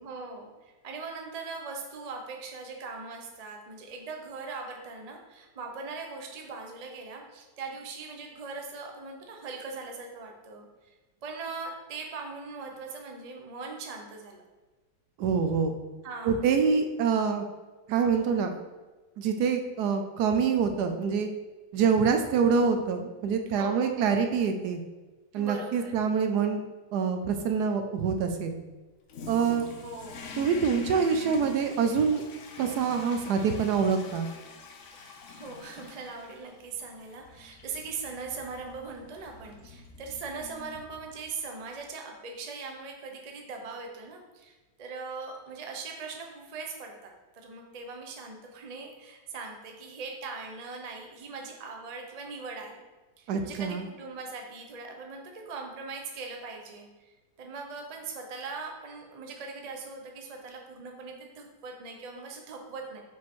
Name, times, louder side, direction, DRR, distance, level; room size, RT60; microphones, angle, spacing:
voice 1, 0.0-10.9 11.2-14.4 16.0-16.4 23.6-24.1 25.3-25.9 29.8-30.3 34.9-52.8 53.2-63.0, right 4 dB, 55° right, 2 dB, 0.4 m, -40 dB
voice 2, 15.2-15.8 16.2-17.4 17.9-18.6 19.2-21.3 21.7-24.8 25.3-26.6 26.9-28.6 29.3-29.7 30.4-32.2 32.6-34.3 53.3-53.8, right 6 dB, 70° right, 6 dB, 1.1 m, -26 dB
Toilet flush, 29.1-41.4, left 4 dB, 60° left, 0.8 m, -46 dB
6.1 x 5.0 x 3.6 m, 1.2 s
omnidirectional pair, 1.9 m